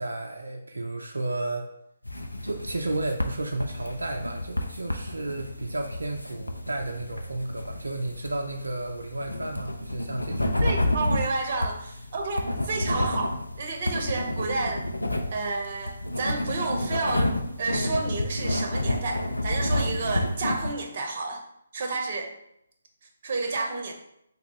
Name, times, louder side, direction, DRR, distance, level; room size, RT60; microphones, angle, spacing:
voice 1, 0.0-1.7 2.4-10.7, right 2 dB, 80° right, 2 dB, 0.4 m, -32 dB
sound 1, 2.1-20.7, left 1 dB, 90° left, 0.4 m, -30 dB
voice 2, 10.6-14.9 15.3-21.4 21.7-22.3 23.2-23.9, right 3 dB, 45° right, 2 dB, 0.7 m, -30 dB
3.5 x 2.2 x 4.1 m, 0.77 s
figure-of-eight pair, 145°, 0 cm